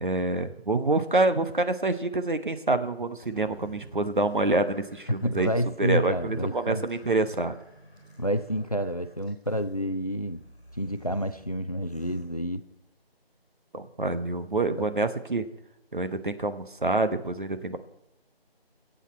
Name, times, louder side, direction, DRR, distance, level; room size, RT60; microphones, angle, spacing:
voice 1, 0.0-5.5 5.8-7.5 13.7-15.4 15.9-17.8, right 2 dB, 50° right, 9 dB, 1.0 m, -27 dB
sound 1, 3.3-12.9, left 1 dB, 5° right, 1.6 m, -53 dB
voice 2, 5.2-6.8 8.2-10.4 10.8-12.6 14.7-14.9, equal, 40° left, 11 dB, 0.5 m, -29 dB
20.0 x 8.3 x 4.3 m, 0.87 s
figure-of-eight pair, 165°, 31 cm